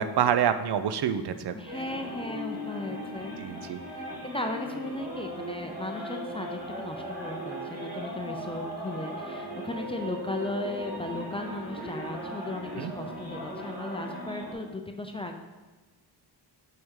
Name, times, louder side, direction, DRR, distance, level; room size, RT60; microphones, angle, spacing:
voice 1, 0.0-1.6 3.4-3.8 12.8-12.9, right 8 dB, 75° right, 11 dB, 0.5 m, -27 dB
voice 2, 1.5-15.4, left 2 dB, 15° left, 4 dB, 0.4 m, -36 dB
sound 1, 1.7-14.5, equal, 20° right, 1.6 m, -38 dB
7.9 x 4.7 x 3.6 m, 1.2 s
wide cardioid pair, 160°, 40 cm